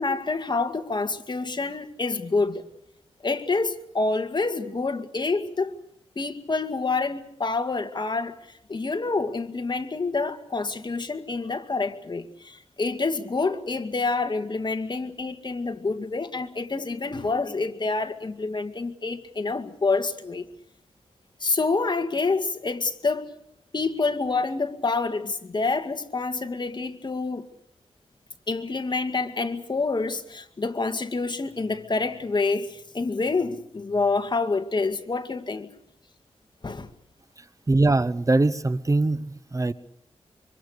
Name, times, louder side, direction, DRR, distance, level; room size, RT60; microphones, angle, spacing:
voice 1, 0.0-2.6 3.2-5.8 6.2-8.4 8.7-20.4 21.4-23.3 23.7-27.5 28.5-35.7 36.6-36.9, left 3 dB, 40° left, 2.1 m, -27 dB
voice 2, 37.4-39.7, right 2 dB, 30° right, 0.9 m, -22 dB
25.5 x 25.0 x 6.7 m
cardioid pair, 70°, 11 cm